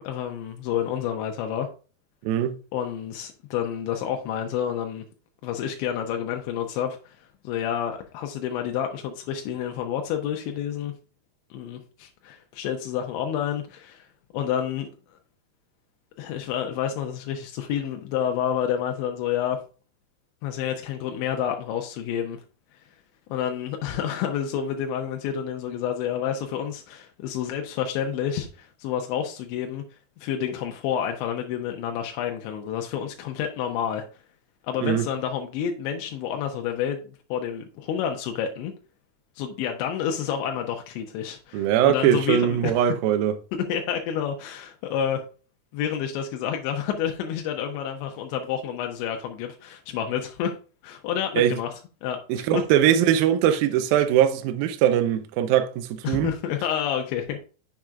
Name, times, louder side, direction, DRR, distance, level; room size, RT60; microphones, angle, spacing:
voice 1, 0.0-1.7 2.7-5.0 5.4-7.2 7.4-10.9 11.5-14.1 14.3-14.9 16.2-19.6 20.4-22.4 23.3-29.8 30.2-34.1 34.7-38.7 39.4-42.7 43.5-45.2 45.7-50.5 50.8-51.7 52.0-52.6 56.0-57.4, left 9 dB, 90° left, 3.1 m, -29 dB
voice 2, 2.2-2.6 34.8-35.1 41.5-43.3 51.4-51.5 52.3-56.3, right 10 dB, 85° right, 2.1 m, -21 dB
7.5 x 6.6 x 2.4 m
omnidirectional pair, 5.1 m